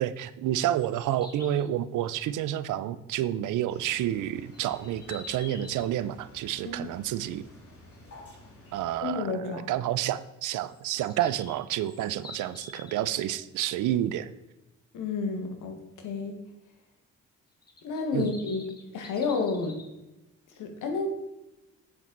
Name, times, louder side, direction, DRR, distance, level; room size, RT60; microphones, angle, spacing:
voice 1, 0.0-7.5 8.7-14.3 18.1-18.3, right 12 dB, 85° right, 15 dB, 0.6 m, -29 dB
sound 1, 0.6-1.7 4.5-5.9 10.7-13.3 17.6-19.8, left 3 dB, 30° left, 1.8 m, -47 dB
sound 2, 3.7-9.0, left 1 dB, 50° left, 3.2 m, -51 dB
voice 2, 9.0-9.6 14.9-16.4 17.8-18.6 18.9-19.8 20.6-21.1, left 4 dB, 85° left, 5 dB, 1.8 m, -30 dB
7.7 x 7.4 x 4.0 m, 0.99 s
cardioid pair, 90°, 30 cm